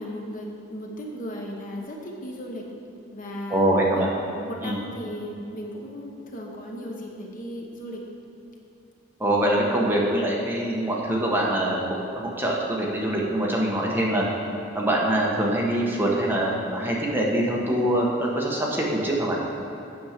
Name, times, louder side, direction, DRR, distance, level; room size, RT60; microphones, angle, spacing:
voice 1, 0.0-2.7 3.1-8.1, equal, 40° left, 0 dB, 1.0 m, -36 dB
voice 2, 3.5-4.1 4.6-4.8 9.2-14.2 14.7-19.4, right 1 dB, 10° right, -3 dB, 1.1 m, -24 dB
8.7 x 6.4 x 5.8 m, 2.8 s
head